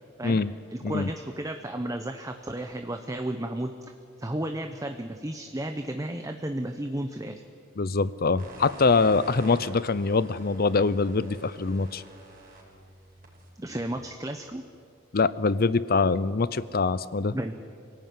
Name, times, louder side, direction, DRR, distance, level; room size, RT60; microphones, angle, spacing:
voice 1, 0.7-3.7 4.2-7.4 13.6-14.7 17.3-17.5, right 1 dB, 15° right, 6 dB, 0.9 m, -33 dB
voice 2, 7.8-12.0 15.1-17.3, left 4 dB, 50° left, 17 dB, 0.7 m, -24 dB
sound 1, 8.4-14.4, right 1 dB, 45° right, 5.7 m, -47 dB
25.5 x 17.0 x 9.5 m, 2.4 s
head